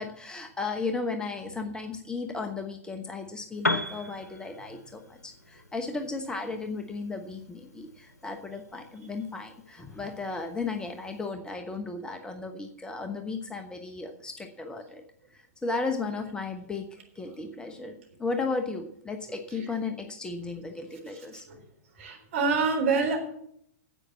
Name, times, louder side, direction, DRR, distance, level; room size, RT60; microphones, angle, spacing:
voice 1, 0.0-15.0 15.3-21.4, left 3 dB, 10° left, 5 dB, 1.0 m, -35 dB
Piano, 3.5-11.3, left 2 dB, 85° left, 1.0 m, -38 dB
voice 2, 21.0-21.6 22.0-23.2, right 4 dB, 55° right, 3 dB, 3.9 m, -28 dB
10.0 x 8.3 x 7.5 m, 0.69 s
figure-of-eight pair, 105°, 9 cm